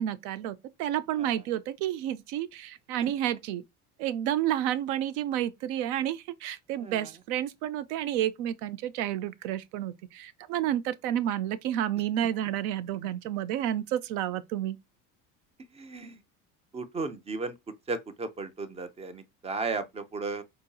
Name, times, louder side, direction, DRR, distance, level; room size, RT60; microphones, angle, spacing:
voice 1, 0.0-3.6 4.0-14.8, right 11 dB, 70° right, 0.5 m, -30 dB
voice 2, 6.8-7.1 15.7-16.2 16.7-17.5 17.9-20.4, right 3 dB, 20° right, 0.4 m, -35 dB
3.9 x 2.6 x 2.2 m
supercardioid pair, 110°, 37 cm